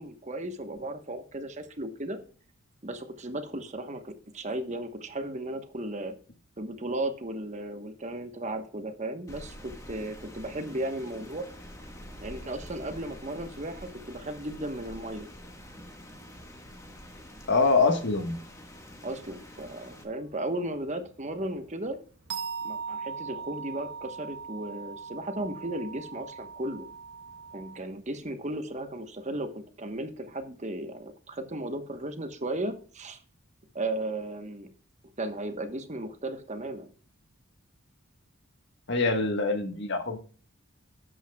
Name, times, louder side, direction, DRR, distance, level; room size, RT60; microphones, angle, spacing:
voice 1, 0.0-2.2 2.8-6.1 6.6-11.5 12.2-15.3 19.0-22.0 22.6-26.9 27.5-33.2 33.7-34.7 35.2-36.9, right 1 dB, 35° right, 7 dB, 1.1 m, -35 dB
Rain, 9.3-20.0, equal, 15° left, 1.5 m, -46 dB
voice 2, 17.5-18.4 38.9-40.2, left 3 dB, 55° left, 7 dB, 1.4 m, -24 dB
sound 1, 20.0-27.8, right 5 dB, 55° right, 1.2 m, -40 dB
12.5 x 8.7 x 2.3 m, 0.41 s
head